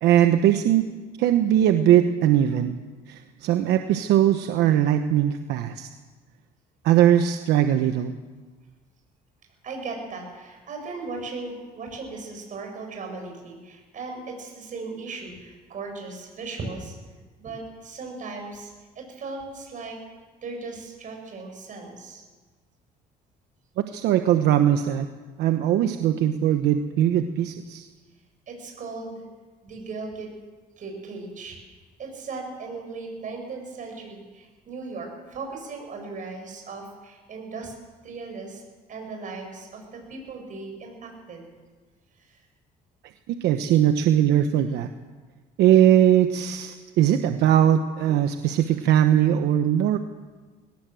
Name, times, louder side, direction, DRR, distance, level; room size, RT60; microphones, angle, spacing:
voice 1, 0.0-0.9 1.2-2.7 3.1-5.9 6.8-8.1 23.9-25.1 25.4-27.9 43.3-44.9 45.6-50.0, right 11 dB, 85° right, 7 dB, 1.1 m, -20 dB
voice 2, 9.6-17.0 17.4-20.0 20.4-22.2 28.5-29.2 29.6-30.3 30.8-31.6 32.0-37.7 38.0-38.6 38.9-41.5 48.6-48.7, right 3 dB, 50° right, 2 dB, 7.9 m, -37 dB
22.0 x 18.0 x 7.8 m, 1.3 s
cardioid pair, 110°, 17 cm